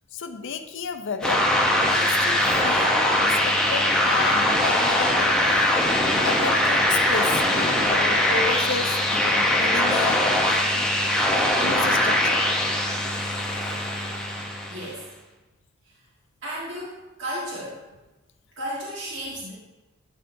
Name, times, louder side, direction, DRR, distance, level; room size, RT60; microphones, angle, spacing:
voice 1, 0.1-1.4 1.8-5.8 6.2-10.9 11.6-12.4, left 5 dB, 60° left, 7 dB, 0.5 m, -32 dB
sound 1, 1.2-14.9, left 1 dB, 5° left, 0.7 m, -21 dB
voice 2, 14.7-15.1 16.4-17.8 18.6-19.5, equal, 60° right, -6 dB, 1.6 m, -33 dB
11.0 x 5.5 x 2.6 m, 1.1 s
head